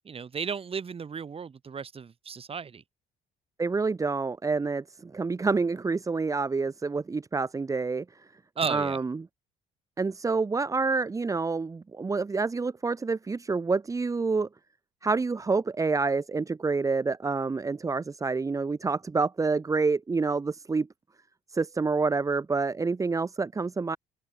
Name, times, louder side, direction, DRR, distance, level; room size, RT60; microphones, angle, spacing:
voice 1, 0.0-2.8 8.6-9.0, right 6 dB, 35° right, 5.6 m, -34 dB
voice 2, 3.6-8.2 8.7-9.3 10.0-14.5 15.0-20.9 21.5-24.0, right 4 dB, 20° right, 0.9 m, -28 dB
cardioid pair, 110°, 17 cm